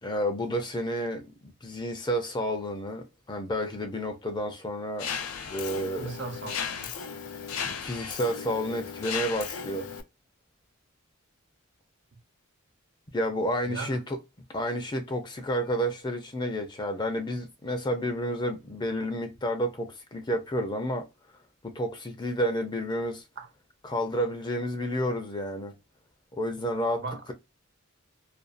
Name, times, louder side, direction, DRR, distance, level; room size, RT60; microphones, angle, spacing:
voice 1, 0.0-5.1 5.4-6.1 7.6-9.9 13.1-14.2 14.5-21.1 21.6-23.2 23.8-25.7 26.3-27.3, equal, 20° left, 0.5 m, -30 dB
Mechanisms, 5.0-10.0, left 7 dB, 85° left, 0.5 m, -35 dB
voice 2, 6.0-6.9 13.7-14.0 23.4-23.5 27.0-27.3, right 4 dB, 55° right, 0.6 m, -38 dB
2.5 x 2.3 x 2.4 m
head